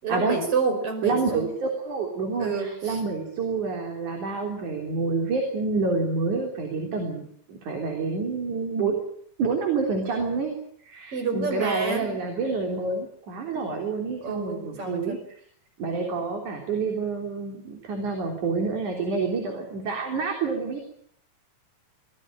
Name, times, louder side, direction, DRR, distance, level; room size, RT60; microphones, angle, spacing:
voice 1, 0.0-1.5 2.4-3.0 11.1-12.2 14.2-15.2, right 4 dB, 50° right, 6 dB, 6.3 m, -28 dB
voice 2, 1.0-7.2 7.5-9.0 9.4-10.5 10.8-15.2 15.8-20.9, right 4 dB, 80° right, 3 dB, 4.9 m, -28 dB
23.5 x 18.0 x 8.9 m, 0.64 s
omnidirectional pair, 3.4 m